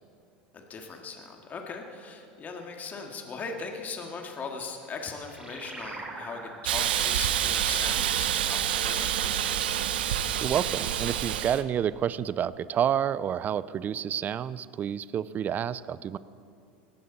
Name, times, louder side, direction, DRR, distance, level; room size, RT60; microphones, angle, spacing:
voice 1, 0.5-9.6, left 4 dB, 30° left, 2 dB, 2.2 m, -39 dB
sound 1, 4.5-9.5, right 2 dB, 15° right, 2.8 m, -45 dB
Hiss, 6.7-11.6, right 10 dB, 80° right, 0.8 m, -27 dB
voice 2, 10.4-16.2, right 9 dB, 35° right, 18 dB, 0.5 m, -29 dB
19.0 x 15.5 x 4.2 m, 2.4 s
hypercardioid pair, 90°, 5 cm